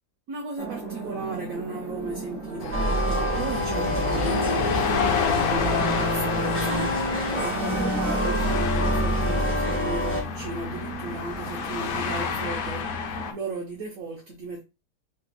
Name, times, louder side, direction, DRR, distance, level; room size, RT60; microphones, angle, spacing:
voice 1, 0.3-14.6, right 3 dB, 65° right, 0.9 m, -36 dB
sound 1, 0.6-13.3, right 4 dB, 35° right, 1.1 m, -38 dB
sound 2, 2.6-13.3, left 6 dB, 80° left, 1.2 m, -29 dB
sound 3, 2.7-10.2, equal, 10° left, 0.7 m, -26 dB
3.9 x 2.7 x 2.2 m
omnidirectional pair, 1.9 m